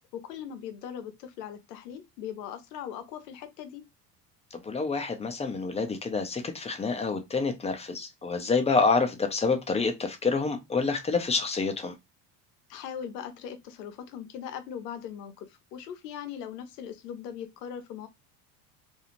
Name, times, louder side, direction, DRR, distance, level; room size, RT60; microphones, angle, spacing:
voice 1, 0.1-3.9 12.7-18.1, left 8 dB, 80° left, 0.7 m, -40 dB
voice 2, 4.6-11.9, left 4 dB, 15° left, 0.5 m, -27 dB
2.6 x 2.4 x 2.9 m
hypercardioid pair, 75°, 48 cm